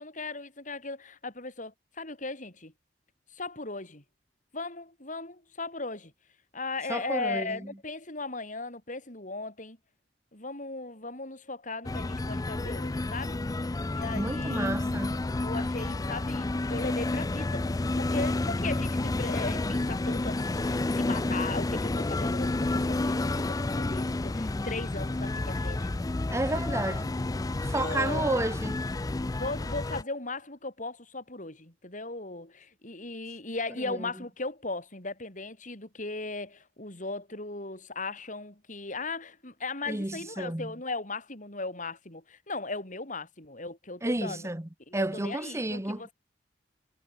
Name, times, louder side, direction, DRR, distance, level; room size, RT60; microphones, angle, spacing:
voice 1, 0.0-2.7 3.3-4.0 4.5-6.1 6.5-9.8 10.3-13.4 13.9-14.7 15.4-25.9 26.5-26.9 27.7-28.4 29.4-44.5 44.9-46.1, left 3 dB, 45° left, 7.1 m, -37 dB
voice 2, 6.9-7.6 14.1-15.2 26.3-27.1 27.6-28.8 33.9-34.1 39.9-40.7 44.0-46.1, right 1 dB, 15° right, 1.1 m, -31 dB
sound 1, 11.8-30.0, left 2 dB, 20° left, 0.4 m, -30 dB
head